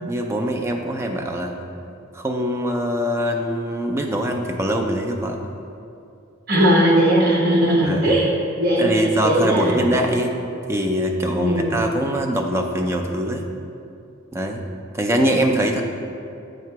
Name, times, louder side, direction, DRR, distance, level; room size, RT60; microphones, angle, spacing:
voice 1, 0.1-1.5 2.1-5.4 7.8-8.2 8.8-10.4 10.7-13.5 14.3-14.6 14.9-15.8, equal, 10° right, 2 dB, 0.3 m, -23 dB
voice 2, 6.5-8.3 8.6-9.8 11.3-11.7, right 1 dB, 45° right, -3 dB, 1.1 m, -18 dB
7.3 x 2.9 x 4.5 m, 2.6 s
head